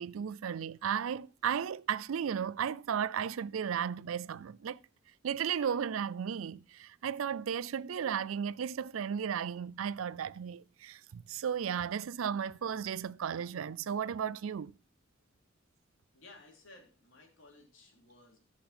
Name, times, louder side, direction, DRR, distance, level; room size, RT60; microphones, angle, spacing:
voice 1, 0.0-4.8 5.2-14.7, right 8 dB, 90° right, 0.4 m, -35 dB
voice 2, 16.1-18.4, left 2 dB, 70° left, 3.3 m, -57 dB
14.0 x 6.0 x 4.3 m
head